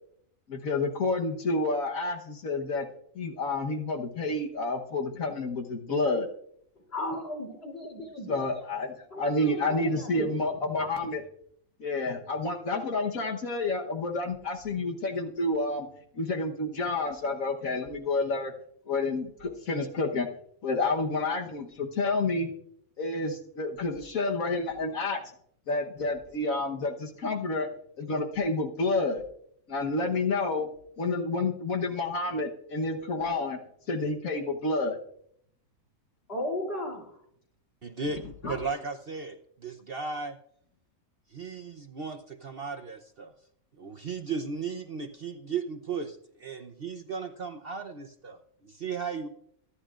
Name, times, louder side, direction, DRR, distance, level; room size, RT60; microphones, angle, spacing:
voice 1, 0.5-2.9 3.2-6.3 8.3-8.9 9.2-11.2 11.8-15.9 16.2-18.5 18.9-20.3 20.6-22.5 23.0-25.2 25.7-27.7 28.0-29.2 29.7-30.7 31.0-33.6 33.9-35.0, left 2 dB, 70° left, 2 dB, 1.6 m, -29 dB
voice 2, 6.9-8.7 9.1-11.1 36.3-37.1 38.4-38.7, left 1 dB, 45° left, 1 dB, 3.5 m, -36 dB
voice 3, 37.8-40.4 41.3-43.3 43.7-49.3, right 5 dB, 45° right, 6 dB, 0.9 m, -36 dB
24.5 x 11.5 x 2.5 m, 0.68 s
omnidirectional pair, 1.5 m